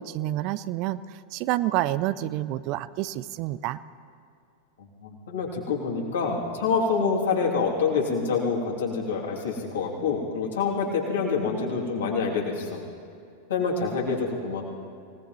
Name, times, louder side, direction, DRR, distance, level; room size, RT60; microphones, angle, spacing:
voice 1, 0.0-3.8, right 15 dB, 40° right, 16 dB, 0.4 m, -28 dB
voice 2, 4.8-12.8 13.5-14.6, left 5 dB, 60° left, -2 dB, 2.8 m, -27 dB
26.0 x 18.0 x 3.1 m, 2.5 s
figure-of-eight pair, 90°, 0 cm